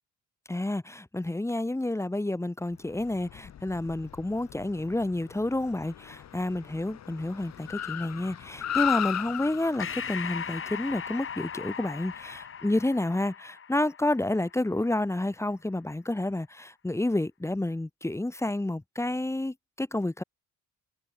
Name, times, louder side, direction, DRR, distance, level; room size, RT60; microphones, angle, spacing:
voice 1, 0.5-20.2, left 1 dB, 10° left, 1.3 m, -30 dB
Car, 2.8-12.4, left 10 dB, 60° left, 2.5 m, -37 dB
Breathing, 9.8-14.7, left 7 dB, 45° left, 2.4 m, -38 dB
cardioid pair, 90°, 30 cm